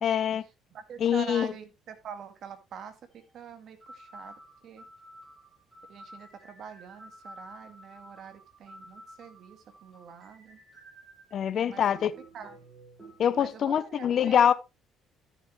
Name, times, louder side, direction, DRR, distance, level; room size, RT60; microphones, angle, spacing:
voice 1, 0.0-0.4 1.0-1.5 11.3-12.1 13.2-14.5, left 9 dB, 55° left, 0.8 m, -24 dB
voice 2, 0.7-4.4 4.6-4.9 5.9-10.6 11.6-11.8 12.3-12.6 13.4-14.5, right 7 dB, 60° right, 2.0 m, -45 dB
sound 1, 3.1-3.3 3.8-11.3 11.9-13.5, right 1 dB, 20° right, 7.7 m, -51 dB
13.5 x 6.9 x 3.2 m
hypercardioid pair, 60°, 0 cm